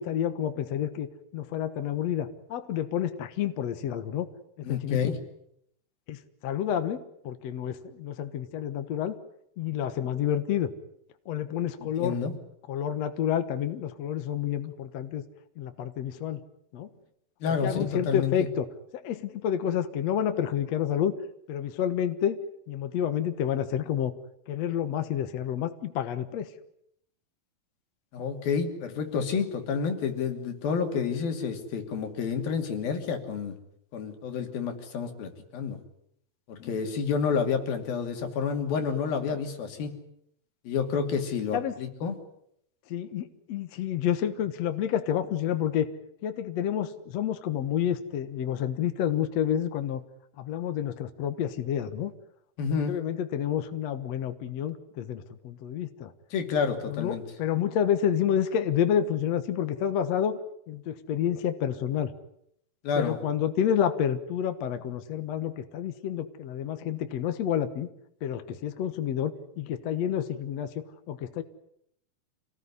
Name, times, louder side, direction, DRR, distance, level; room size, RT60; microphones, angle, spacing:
voice 1, 0.0-4.3 4.6-5.0 6.1-6.2 6.4-9.2 9.6-10.7 11.3-12.2 12.7-15.2 15.6-16.4 16.7-16.9 17.5-18.7 18.9-21.1 21.5-22.4 22.7-24.1 24.5-26.5 41.5-41.7 42.9-45.9 46.2-50.0 50.4-52.1 52.9-56.1 56.8-60.4 60.7-62.1 63.0-67.9 68.2-71.4, left 9 dB, 60° left, 9 dB, 2.0 m, -29 dB
voice 2, 4.6-5.2 11.8-12.4 17.4-18.5 28.1-33.5 33.9-35.8 36.5-39.9 40.7-42.2 52.6-53.0 56.3-57.2 62.8-63.2, left 6 dB, 75° left, 5 dB, 4.5 m, -29 dB
27.0 x 19.0 x 9.8 m, 0.75 s
omnidirectional pair, 4.2 m